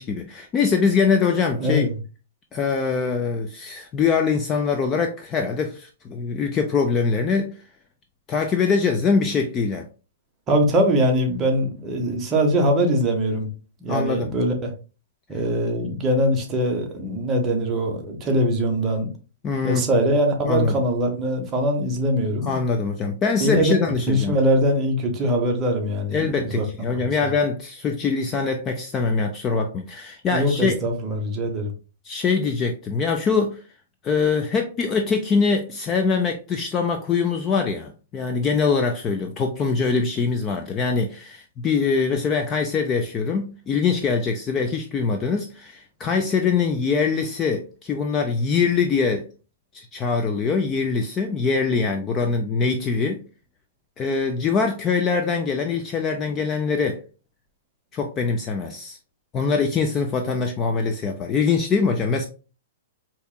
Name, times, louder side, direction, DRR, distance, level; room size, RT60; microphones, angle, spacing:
voice 1, 0.0-1.9 2.5-7.6 8.3-9.9 13.9-14.3 19.4-19.8 20.5-20.8 22.4-24.4 26.1-30.8 32.0-33.6 34.0-49.3 49.7-53.2 54.0-57.0 57.9-59.0 59.3-62.3, left 5 dB, 20° left, 0.3 m, -23 dB
voice 2, 1.6-1.9 10.5-13.5 13.8-14.7 15.3-19.1 19.6-22.6 23.4-23.7 24.1-26.6 27.0-27.3 30.3-31.7, equal, 15° right, 0.7 m, -22 dB
4.4 x 2.8 x 2.2 m
hypercardioid pair, 165°, 0 cm